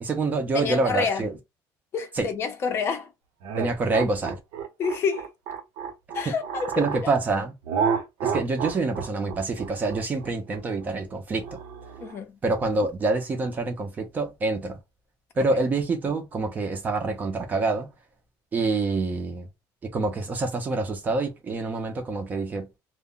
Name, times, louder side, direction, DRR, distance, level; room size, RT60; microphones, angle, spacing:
voice 1, 0.0-1.3 2.1-2.3 3.6-4.4 6.3-6.4 6.8-7.5 8.2-11.6 12.4-14.8 15.4-17.9 18.5-19.5 19.8-22.7, right 3 dB, 20° right, 0.5 m, -26 dB
voice 2, 0.5-1.2 1.9-3.1 4.8-5.3 6.1-7.1 12.0-12.3, left 5 dB, 30° left, 0.6 m, -28 dB
sound 1, 3.4-7.0 7.7-12.2, right 6 dB, 75° right, 0.7 m, -30 dB
2.1 x 2.1 x 3.6 m
cardioid pair, 175°, 8 cm